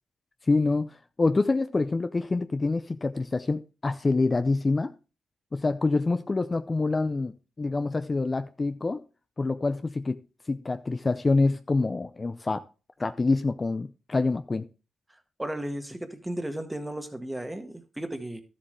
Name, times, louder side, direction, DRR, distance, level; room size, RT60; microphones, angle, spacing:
voice 1, 0.5-4.9 5.5-9.0 9.4-10.2 10.5-12.6 13.0-14.7, left 3 dB, 35° left, 0.5 m, -26 dB
voice 2, 15.4-18.4, right 1 dB, 10° right, 1.6 m, -34 dB
12.0 x 7.5 x 3.3 m
cardioid pair, 60°, 0 cm